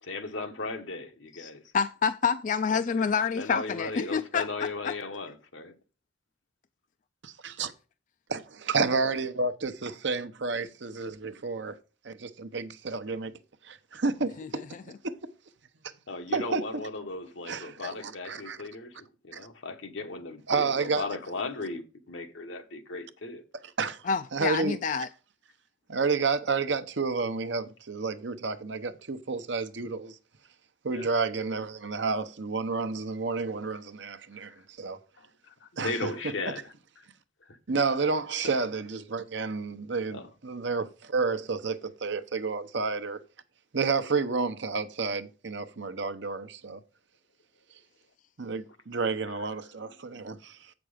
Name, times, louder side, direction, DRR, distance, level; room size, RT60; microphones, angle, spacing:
voice 1, 0.0-1.6 3.4-5.7 16.1-19.0 19.2-23.4 30.9-31.1 34.3-34.6 35.2-37.1 37.4-37.6 40.1-40.3 49.3-49.5, left 3 dB, 75° left, 1.2 m, -37 dB
voice 2, 1.4-4.5 4.8-4.9 14.4-14.8 24.0-25.1, left 6 dB, 40° left, 0.3 m, -28 dB
voice 3, 7.2-7.7 8.3-11.7 12.0-13.3 13.6-15.2 16.3-16.8 17.5-18.6 19.3-19.4 20.5-21.1 23.8-24.8 25.9-30.2 30.8-35.0 35.8-36.1 37.7-43.2 43.7-46.8 48.4-50.7, right 4 dB, 65° right, 0.8 m, -30 dB
7.9 x 6.1 x 5.0 m
head